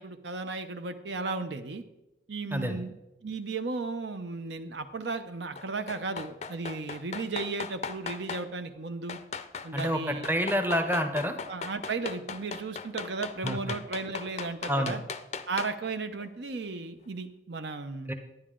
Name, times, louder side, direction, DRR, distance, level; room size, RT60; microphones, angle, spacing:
voice 1, 0.0-1.8 2.3-2.9 3.2-9.2 9.6-10.3 11.5-15.0 15.5-18.1, right 3 dB, 70° right, 9 dB, 0.7 m, -35 dB
voice 2, 2.5-2.9 9.7-11.4 13.4-13.6 14.7-15.0 18.1-18.2, equal, 10° right, 6 dB, 0.8 m, -28 dB
sound 1, 5.6-8.5 9.1-10.0 10.2-15.9 16.2-16.3, left 5 dB, 35° left, 0.4 m, -38 dB
10.5 x 10.0 x 3.8 m, 0.96 s
head